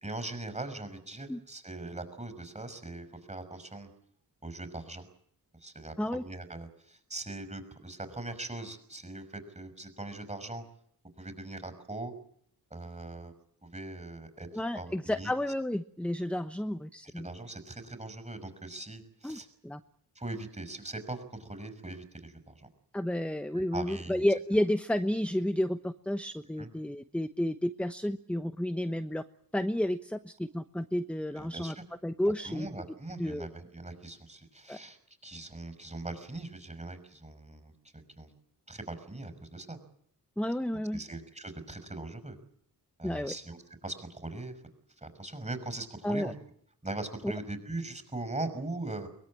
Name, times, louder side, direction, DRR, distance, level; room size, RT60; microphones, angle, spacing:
voice 1, 0.0-3.9 4.4-5.1 5.6-10.6 11.2-12.1 12.7-13.3 13.6-14.5 14.7-15.3 17.1-19.5 20.2-22.7 23.7-24.2 26.6-26.7 31.3-31.8 32.4-38.3 38.7-39.8 40.9-42.4 43.0-44.6 45.0-46.3 46.8-49.1, right 2 dB, 15° right, 10 dB, 6.0 m, -41 dB
voice 2, 14.5-17.3 19.2-19.8 22.9-29.2 29.5-31.7 32.0-32.7 33.2-33.5 34.7-34.8 40.4-41.0 43.0-43.3 46.0-46.3 47.2-47.3, left 1 dB, 5° left, 10 dB, 1.0 m, -31 dB
23.5 x 21.5 x 8.7 m, 0.65 s
cardioid pair, 90°, 40 cm